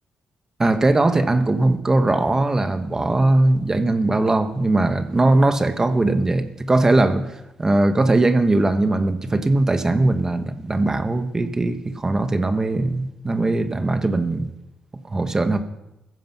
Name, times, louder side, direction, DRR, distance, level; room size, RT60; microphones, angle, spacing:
voice 1, 0.6-7.3 7.6-14.5 15.0-15.6, right 2 dB, 20° right, 1.4 m, -20 dB
15.5 x 15.0 x 6.1 m
cardioid pair, 100°, 3 cm